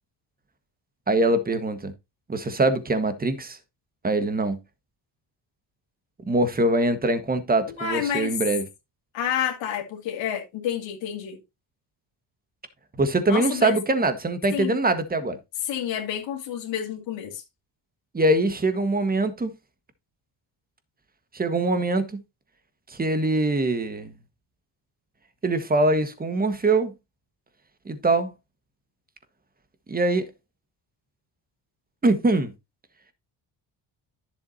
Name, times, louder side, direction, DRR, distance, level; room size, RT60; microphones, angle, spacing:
voice 1, 1.1-1.9 2.3-3.6 4.0-4.6 6.3-8.7 13.0-15.4 18.1-19.5 21.3-22.2 22.9-24.1 25.4-26.9 27.8-28.3 29.9-30.3 32.0-32.5, right 2 dB, 20° right, 1.6 m, -23 dB
voice 2, 7.8-8.3 9.1-11.4 13.3-13.8 14.5-14.8 15.7-17.4, left 9 dB, 80° left, 2.5 m, -29 dB
10.5 x 7.2 x 2.8 m
cardioid pair, 100°, 44 cm